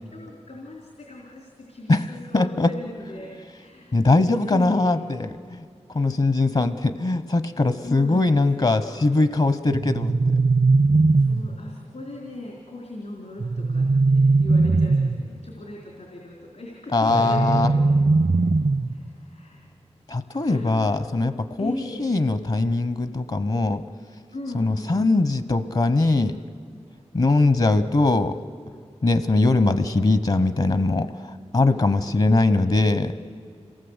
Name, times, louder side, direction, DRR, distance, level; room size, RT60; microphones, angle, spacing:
voice 1, 0.0-4.0 4.2-4.9 5.9-6.1 7.8-9.4 11.1-18.0 18.3-18.4 18.9-19.6 20.3-20.9 21.6-22.1 24.3-25.1 31.6-33.2, left 1 dB, 80° left, -2 dB, 3.8 m, -39 dB
voice 2, 2.3-2.7 3.9-5.7 5.9-10.4 16.9-17.7 20.1-23.8 24.5-26.4 27.1-28.4 29.0-33.1, left 2 dB, 55° left, 11 dB, 0.9 m, -21 dB
sound 1, 9.7-11.7 13.4-15.3 17.1-19.1, right 3 dB, 65° right, 0.8 m, -20 dB
27.0 x 19.0 x 8.1 m, 2.4 s
wide cardioid pair, 55°, 11 cm